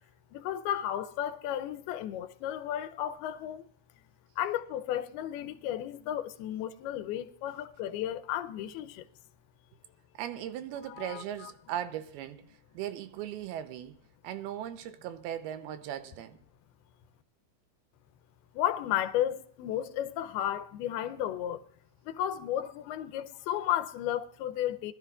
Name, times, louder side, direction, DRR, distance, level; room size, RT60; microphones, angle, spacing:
voice 1, 0.3-3.7 4.4-9.1 10.9-11.5 18.5-21.6 22.0-24.9, left 11 dB, 85° left, 2.7 m, -33 dB
voice 2, 10.1-14.0 14.2-16.4, right 11 dB, 85° right, 2.8 m, -38 dB
23.5 x 12.5 x 2.4 m
omnidirectional pair, 4.4 m